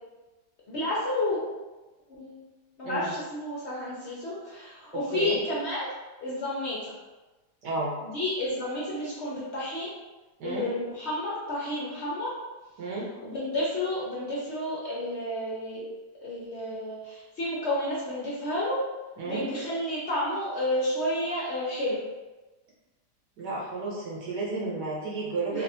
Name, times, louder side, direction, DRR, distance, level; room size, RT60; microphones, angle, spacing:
voice 1, 0.7-1.4 2.2-2.4 2.8-5.9 6.2-6.8 8.0-9.9 10.4-12.3 13.2-15.8 16.2-18.8 19.2-22.0 25.5-25.6, left 1 dB, 60° left, -6 dB, 0.7 m, -31 dB
voice 2, 4.9-5.4 7.6-7.9 10.4-10.7 12.8-13.1 19.2-19.4 23.4-25.6, right 3 dB, 75° right, -4 dB, 1.3 m, -32 dB
3.4 x 2.5 x 2.6 m, 1.2 s
omnidirectional pair, 1.8 m